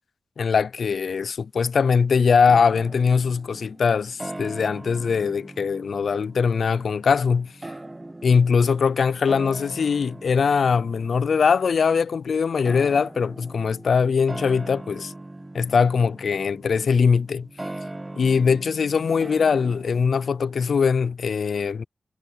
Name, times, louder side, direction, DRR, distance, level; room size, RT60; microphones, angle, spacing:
voice 1, 0.4-7.5 8.2-15.1 15.5-17.5 18.2-21.8, left 5 dB, 85° left, 0.3 m, -21 dB
sound 1, 2.5-20.9, right 2 dB, 20° right, 0.8 m, -40 dB
wide cardioid pair, 90°, 0 cm